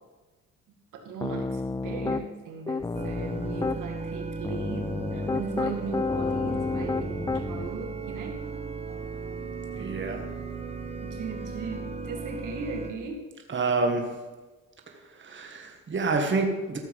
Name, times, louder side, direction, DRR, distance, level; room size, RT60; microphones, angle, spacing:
voice 1, 0.9-8.4 11.0-13.2, right 5 dB, 85° right, 2 dB, 2.2 m, -38 dB
Piano, 1.2-2.3 2.7-3.8 4.4-7.7, left 3 dB, 15° left, 0.4 m, -30 dB
sound 1, 2.9-12.9, right 4 dB, 20° right, 1.2 m, -36 dB
voice 2, 9.8-10.2 13.5-14.2 14.9-16.8, right 3 dB, 40° right, 3 dB, 1.8 m, -28 dB
14.0 x 7.4 x 5.5 m, 1.2 s
cardioid pair, 90°, 30 cm